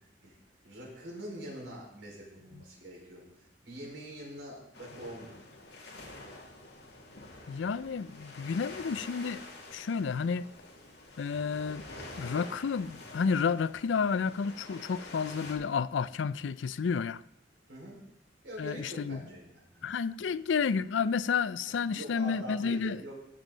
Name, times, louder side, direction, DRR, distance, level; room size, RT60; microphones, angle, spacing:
voice 1, 0.6-5.4 17.7-18.0 18.4-19.9 20.2-20.4 21.7-23.1, equal, 70° right, 4.9 m, -44 dB
sound 1, 4.7-15.5, left 2 dB, 60° left, 2.4 m, -47 dB
voice 2, 7.5-9.4 9.7-10.5 11.2-11.8 12.2-17.2 18.6-19.2 19.8-23.0, left 5 dB, 85° left, 0.4 m, -31 dB
16.5 x 7.3 x 3.9 m
head